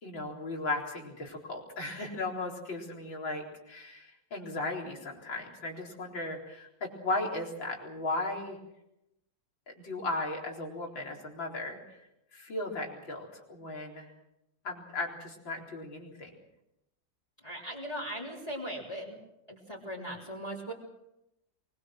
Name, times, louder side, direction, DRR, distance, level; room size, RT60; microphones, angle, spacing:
voice 1, 0.0-8.6 9.8-12.0 12.3-14.1 14.6-16.3, left 2 dB, 90° left, 0 dB, 4.8 m, -36 dB
voice 2, 17.4-19.2 19.5-20.7, equal, 20° left, -4 dB, 3.7 m, -39 dB
24.0 x 22.0 x 6.3 m, 0.87 s
omnidirectional pair, 2.0 m